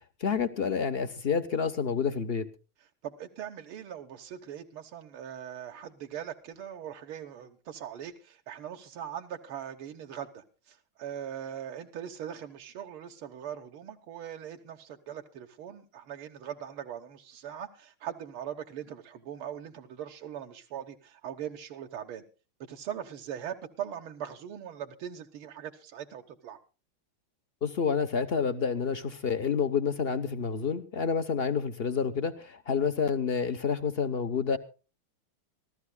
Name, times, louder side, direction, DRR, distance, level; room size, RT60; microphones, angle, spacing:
voice 1, 0.2-2.5 27.6-34.6, left 6 dB, 55° left, 9 dB, 0.6 m, -29 dB
voice 2, 3.0-22.2 22.7-26.6, right 9 dB, 85° right, 4 dB, 2.0 m, -41 dB
25.5 x 14.5 x 2.2 m, 0.33 s
omnidirectional pair, 2.3 m